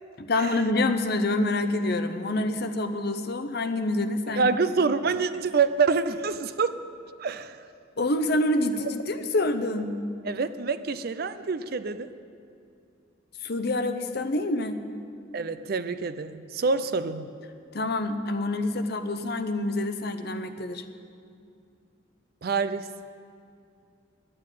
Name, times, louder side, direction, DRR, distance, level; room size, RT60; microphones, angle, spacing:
voice 1, 0.2-4.5 8.0-10.0 13.4-14.8 17.7-20.8, left 2 dB, 55° left, 9 dB, 0.7 m, -27 dB
voice 2, 4.3-6.8 7.2-7.6 10.2-12.1 15.3-17.3 22.4-22.9, right 4 dB, 50° right, 13 dB, 0.5 m, -26 dB
10.5 x 9.5 x 9.1 m, 2.5 s
head